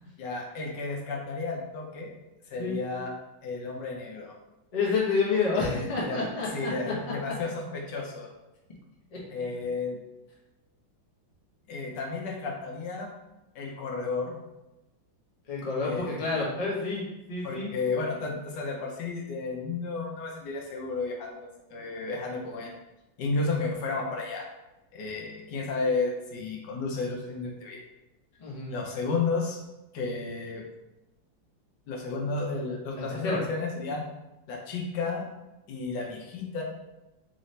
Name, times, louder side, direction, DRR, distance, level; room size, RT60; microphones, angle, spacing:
voice 1, 0.2-2.1 2.5-3.1 3.4-4.3 5.5-6.3 6.5-8.3 9.3-10.0 11.7-13.1 13.5-14.4 15.8-16.4 17.4-22.7 23.2-24.5 24.9-27.8 28.7-29.6 29.9-30.6 31.9-34.0 34.5-35.3 35.7-36.6, left 3 dB, 70° left, 0 dB, 1.2 m, -32 dB
voice 2, 4.7-6.9 9.1-9.2 15.5-17.7 28.4-28.7 33.0-33.4, left 4 dB, 50° left, -5 dB, 0.4 m, -29 dB
3.9 x 2.7 x 3.2 m, 0.97 s
omnidirectional pair, 2.1 m